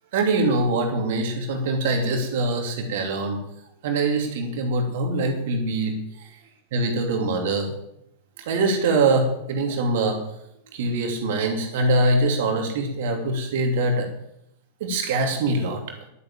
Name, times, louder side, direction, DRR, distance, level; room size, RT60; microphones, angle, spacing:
voice 1, 0.1-3.4 3.8-6.3 6.7-7.7 8.5-10.2 10.7-14.1 14.8-15.8, right 2 dB, 55° right, 4 dB, 2.8 m, -23 dB
11.5 x 9.7 x 7.4 m, 0.78 s
figure-of-eight pair, 90°, 0 cm